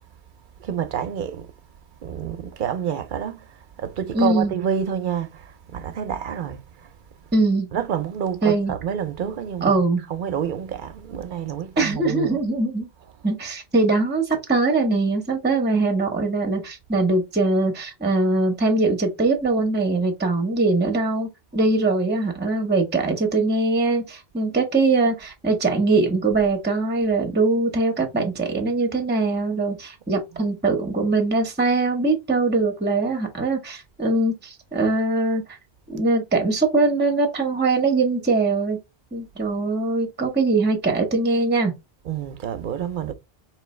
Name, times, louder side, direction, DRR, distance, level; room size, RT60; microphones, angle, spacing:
voice 1, 0.6-1.5 2.0-3.4 3.8-5.5 5.7-6.6 7.7-9.8 10.1-12.4 30.3-30.4 42.0-43.1, right 8 dB, 60° right, 0.6 m, -28 dB
voice 2, 4.1-4.6 7.3-7.7 8.4-8.7 9.6-10.0 11.8-12.9 13.2-35.4 35.9-38.8 39.1-41.7, right 3 dB, 10° right, 0.7 m, -22 dB
3.9 x 3.0 x 3.1 m
omnidirectional pair, 1.1 m